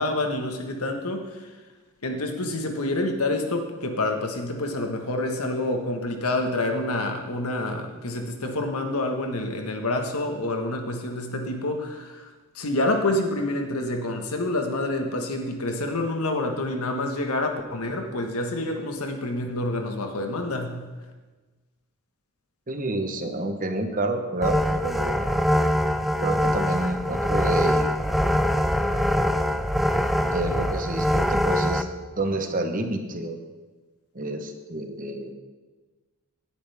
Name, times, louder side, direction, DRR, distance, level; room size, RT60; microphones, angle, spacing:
voice 1, 0.0-1.5 2.0-12.3 12.5-20.8, left 2 dB, 80° left, 4 dB, 1.6 m, -27 dB
voice 2, 22.7-25.3 26.2-27.9 30.2-31.9 32.2-33.4 34.1-35.3, right 2 dB, 40° right, 6 dB, 1.1 m, -28 dB
sound 1, 24.4-31.8, equal, ahead, 0.5 m, -23 dB
18.0 x 10.0 x 3.6 m, 1.3 s
head